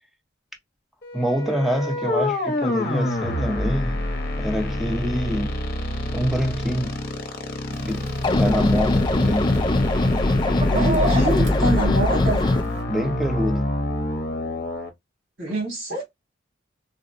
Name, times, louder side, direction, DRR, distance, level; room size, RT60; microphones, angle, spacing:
sound 1, 1.0-14.9, left 1 dB, 50° left, 0.8 m, -26 dB
voice 1, 1.1-4.0 4.4-5.5 6.1-7.0 7.9-8.1 8.4-9.5 12.9-13.7, equal, ahead, 0.7 m, -25 dB
Chicken rooster, 7.7-12.8, right 1 dB, 40° right, 1.1 m, -32 dB
sound 2, 8.2-12.6, left 2 dB, 25° left, 0.3 m, -21 dB
voice 2, 10.7-12.5 15.4-16.0, right 2 dB, 70° right, 2.2 m, -26 dB
4.1 x 2.0 x 2.4 m
head